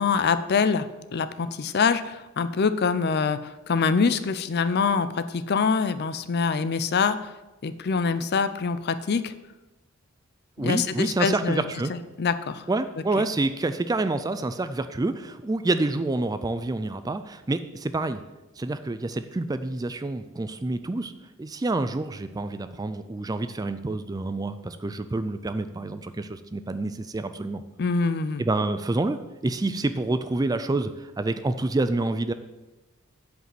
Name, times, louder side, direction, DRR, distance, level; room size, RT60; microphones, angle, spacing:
voice 1, 0.0-7.3 7.6-9.3 10.6-11.6 11.9-12.6 13.2-13.3 27.8-28.4, left 5 dB, 50° left, 12 dB, 0.5 m, -25 dB
voice 2, 10.6-11.9 12.7-18.2 18.6-21.1 21.4-27.6 28.4-32.3, right 2 dB, 15° right, 11 dB, 0.3 m, -28 dB
8.1 x 5.1 x 7.5 m, 1.1 s
head